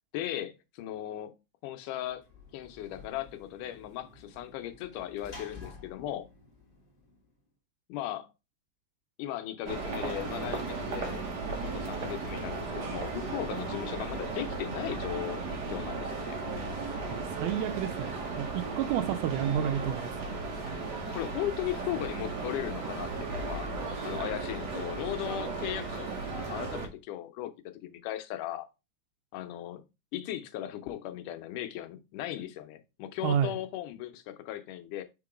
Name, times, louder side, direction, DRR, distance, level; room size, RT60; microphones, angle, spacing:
voice 1, 0.1-1.3 1.6-2.2 2.5-6.3 7.9-8.3 9.2-11.3 11.6-16.4 21.1-23.7 24.1-27.5 27.8-28.7 29.3-29.8 30.1-35.0, left 13 dB, 80° left, 2.2 m, -37 dB
Sliding door / Slam, 2.0-7.4, left 3 dB, 25° left, 1.3 m, -51 dB
sound 1, 9.6-26.9, right 3 dB, 65° right, 1.0 m, -35 dB
voice 2, 16.8-20.3 33.2-33.6, right 9 dB, 80° right, 2.1 m, -31 dB
5.1 x 3.8 x 4.9 m
omnidirectional pair, 3.7 m